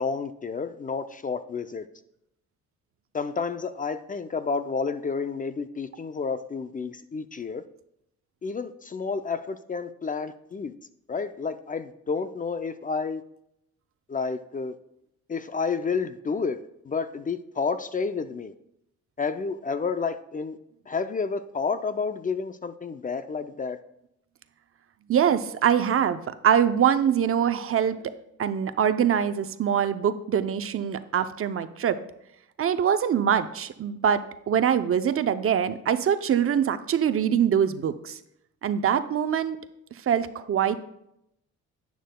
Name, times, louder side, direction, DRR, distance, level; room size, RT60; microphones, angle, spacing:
voice 1, 0.0-1.9 3.1-7.6 8.4-10.7 11.1-13.2 14.1-14.8 15.3-18.5 19.2-20.6 20.9-23.8, left 5 dB, 25° left, 0.5 m, -30 dB
voice 2, 25.1-28.0 28.4-32.0 32.6-38.2 38.6-39.6 40.1-40.8, right 8 dB, 45° right, 0.6 m, -24 dB
10.0 x 9.4 x 2.2 m
cardioid pair, 90°, 30 cm